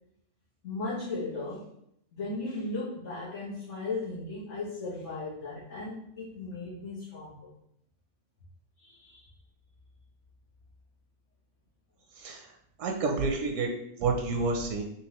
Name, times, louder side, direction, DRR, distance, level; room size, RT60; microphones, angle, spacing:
voice 1, 0.6-1.6 2.1-7.5 8.8-9.2, left 3 dB, 85° left, -10 dB, 1.6 m, -36 dB
voice 2, 12.2-12.5 12.8-13.7 14.0-14.8, right 4 dB, 90° right, 2 dB, 1.0 m, -29 dB
4.1 x 3.3 x 3.0 m, 0.74 s
omnidirectional pair, 1.3 m